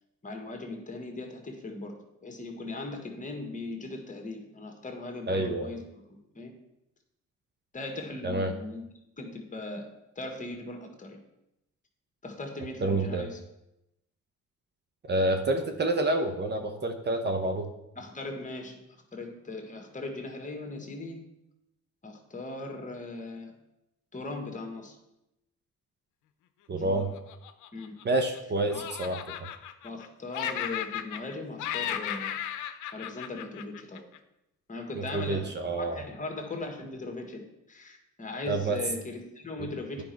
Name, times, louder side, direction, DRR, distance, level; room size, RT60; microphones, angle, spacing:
voice 1, 0.2-6.5 7.7-8.8 9.2-9.9 10.2-11.2 12.2-13.4 18.0-18.8 19.1-21.2 22.0-23.5 24.1-25.0 26.7-27.1 27.7-27.9 28.7-28.8 29.8-32.3 32.9-34.0 34.7-40.0, left 2 dB, 25° left, 3 dB, 1.7 m, -39 dB
voice 2, 5.3-5.7 8.2-8.5 12.8-13.3 15.0-17.7 26.7-27.1 28.0-29.2 34.9-36.0 38.5-38.8, right 2 dB, 35° right, 5 dB, 0.9 m, -28 dB
Laughter, 27.1-28.4 28.7-30.1 30.3-31.3 31.6-34.2, left 10 dB, 80° left, 0.7 m, -35 dB
9.6 x 5.2 x 4.6 m, 0.87 s
cardioid pair, 90°, 30 cm